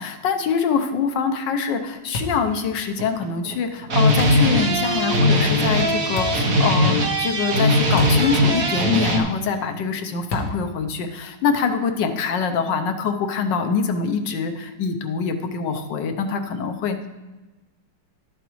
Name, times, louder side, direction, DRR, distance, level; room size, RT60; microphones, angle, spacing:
voice 1, 0.0-17.1, left 5 dB, 80° left, 7 dB, 1.4 m, -24 dB
sound 1, 2.1-2.5 4.2-4.5 6.2-6.5 8.0-8.3 8.6-8.7 10.3-10.7, left 1 dB, 50° left, 1.4 m, -29 dB
sound 2, 3.0-3.5 3.8-9.2, equal, 55° right, 1.6 m, -19 dB
12.0 x 8.1 x 3.1 m, 1.1 s
omnidirectional pair, 1.9 m